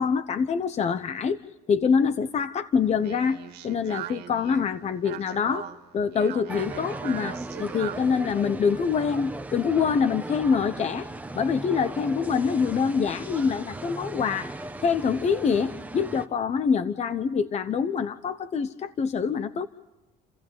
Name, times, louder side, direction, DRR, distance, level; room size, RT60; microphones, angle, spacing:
voice 1, 0.0-1.4 1.7-5.7 5.9-11.1 11.3-14.5 14.8-19.7, left 6 dB, 40° left, 11 dB, 0.9 m, -25 dB
Speech, 2.7-8.2, right 12 dB, 75° right, 2.0 m, -40 dB
sound 1, 6.5-16.3, right 2 dB, 10° right, 1.3 m, -37 dB
30.0 x 15.5 x 9.2 m, 1.1 s
cardioid pair, 110°, 17 cm